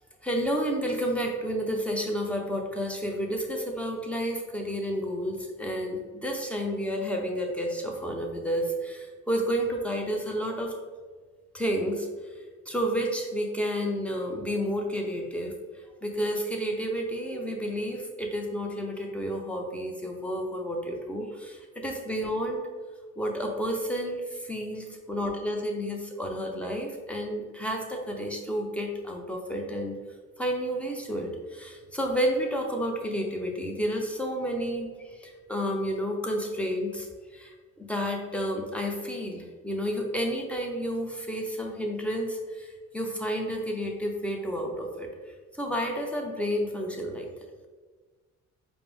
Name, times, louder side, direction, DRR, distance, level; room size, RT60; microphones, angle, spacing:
voice 1, 0.2-10.7 11.5-22.6 23.2-30.0 30.4-47.3, equal, 5° left, 1 dB, 0.6 m, -31 dB
4.8 x 2.0 x 3.2 m, 1.4 s
cardioid pair, 90°, 30 cm